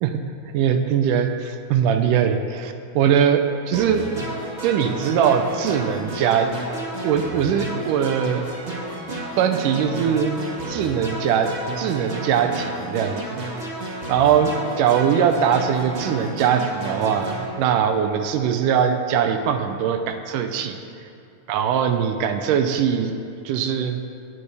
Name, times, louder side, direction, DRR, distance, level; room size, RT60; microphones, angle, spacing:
voice 1, 0.5-4.0 4.6-6.5 7.0-8.4 9.4-13.4 14.1-20.8 21.5-23.2 23.5-24.0, right 8 dB, 80° right, 7 dB, 2.2 m, -21 dB
sound 1, 3.7-17.4, right 1 dB, 40° right, 1.0 m, -32 dB
19.5 x 9.5 x 3.4 m, 2.5 s
omnidirectional pair, 3.7 m